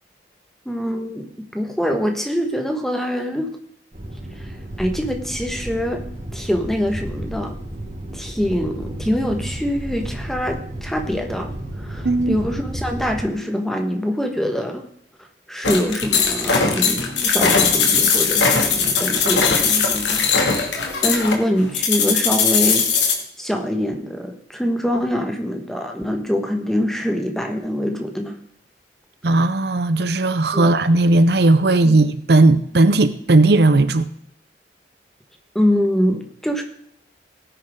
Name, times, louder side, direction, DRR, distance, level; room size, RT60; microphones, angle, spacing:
voice 1, 0.6-3.5 4.4-4.5 4.8-6.0 6.3-7.6 8.1-14.8 15.5-20.3 21.0-23.1 23.4-28.4 30.5-30.7 31.8-32.0 35.5-36.6, equal, ahead, 1.4 m, -24 dB
sound 1, 3.9-13.2, right 1 dB, 40° right, 2.9 m, -32 dB
voice 2, 12.0-12.4 29.2-34.1, right 2 dB, 65° right, 0.7 m, -16 dB
sound 2, 15.6-23.1, left 5 dB, 90° left, 2.4 m, -19 dB
17.5 x 10.0 x 3.8 m
head